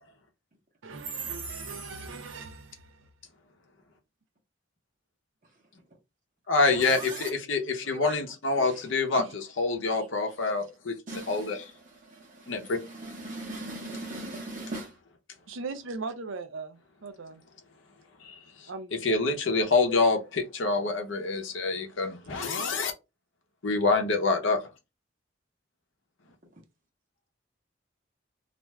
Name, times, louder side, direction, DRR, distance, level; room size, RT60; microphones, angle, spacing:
voice 1, 0.8-3.0 9.2-9.3 9.9-10.1 15.5-17.4 18.7-19.0, right 3 dB, 70° right, 0.5 m, -39 dB
voice 2, 1.3-2.1 6.7-7.3 7.8-8.2 8.6-9.2 9.9-10.0 11.1-15.0 26.5-26.6, right 2 dB, 40° right, 0.9 m, -40 dB
voice 3, 6.5-9.2 9.6-11.0 11.3-11.6 12.5-12.8 18.2-18.7 19.0-22.9 23.6-24.6, left 3 dB, 70° left, 0.7 m, -26 dB
2.5 x 2.3 x 3.1 m
head